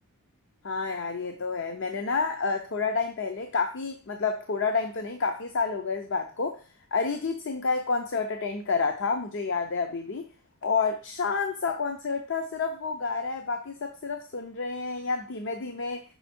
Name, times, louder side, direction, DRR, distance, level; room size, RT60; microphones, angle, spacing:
voice 1, 0.6-6.6 6.9-10.3 10.6-16.0, left 4 dB, 60° left, 5 dB, 0.6 m, -29 dB
5.7 x 4.4 x 4.3 m, 0.35 s
head